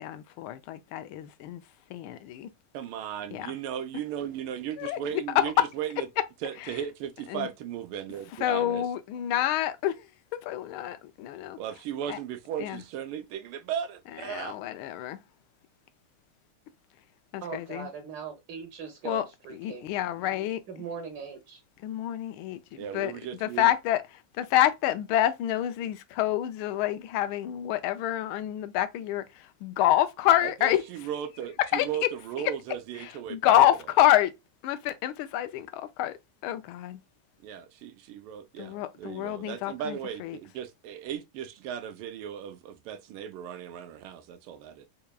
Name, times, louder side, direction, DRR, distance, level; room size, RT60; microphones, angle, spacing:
voice 1, 0.0-1.6 1.9-2.5 3.3-3.5 4.8-5.0 5.4-5.6 7.3-7.5 8.4-10.0 10.4-11.6 12.1-12.2 12.6-12.8 14.3-15.2 17.3-17.9 19.0-19.2 19.6-20.6 21.8-23.1 23.4-24.0 24.4-29.2 29.6-30.8 31.7-32.1 33.3-34.3 34.6-36.2 36.4-37.0 38.6-40.4, left 12 dB, 80° left, 1.4 m, -27 dB
voice 2, 2.7-6.1 6.4-8.9 11.6-14.6 22.7-23.7 30.4-33.7 37.4-44.9, right 9 dB, 80° right, 1.5 m, -36 dB
voice 3, 17.4-19.9 20.7-21.6, right 6 dB, 60° right, 1.3 m, -40 dB
4.5 x 2.8 x 2.2 m
omnidirectional pair, 2.4 m